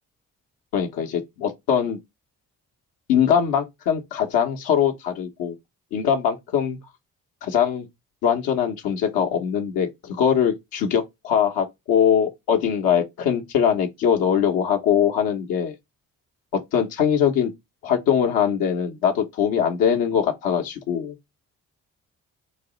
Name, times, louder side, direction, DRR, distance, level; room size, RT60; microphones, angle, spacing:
voice 1, 0.7-2.0 3.1-5.5 5.9-6.8 7.4-7.9 8.2-15.8 16.5-17.5 17.8-21.2, left 8 dB, 85° left, 0.8 m, -22 dB
4.1 x 2.0 x 3.6 m
supercardioid pair, 50°, 35 cm